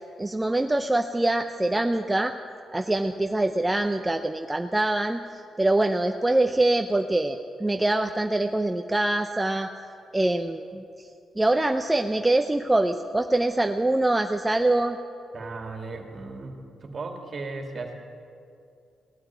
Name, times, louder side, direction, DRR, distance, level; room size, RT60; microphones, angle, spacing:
voice 1, 0.2-2.3 2.7-5.2 5.6-9.7 10.1-10.8 11.4-15.0, right 2 dB, 10° right, 6 dB, 0.6 m, -24 dB
voice 2, 15.3-17.9, right 3 dB, 45° right, 3 dB, 2.4 m, -36 dB
17.5 x 8.8 x 9.4 m, 2.5 s
cardioid pair, 90°, 0 cm